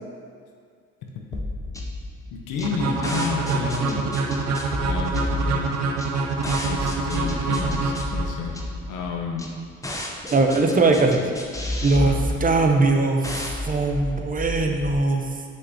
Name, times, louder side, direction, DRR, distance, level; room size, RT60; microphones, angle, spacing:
voice 1, 1.0-1.4 2.3-4.1 4.8-5.8 6.6-8.6 8.9-9.5 10.8-11.0 12.0-12.2, left 5 dB, 90° left, 1 dB, 0.9 m, -31 dB
sound 1, 1.3-14.9, left 1 dB, 10° left, 0.8 m, -31 dB
sound 2, 2.6-8.6, right 4 dB, 60° right, 0.8 m, -26 dB
voice 2, 10.3-11.2 11.8-15.3, right 3 dB, 30° right, 3 dB, 0.8 m, -20 dB
5.8 x 5.6 x 4.2 m, 2.2 s
cardioid pair, 90°, 30 cm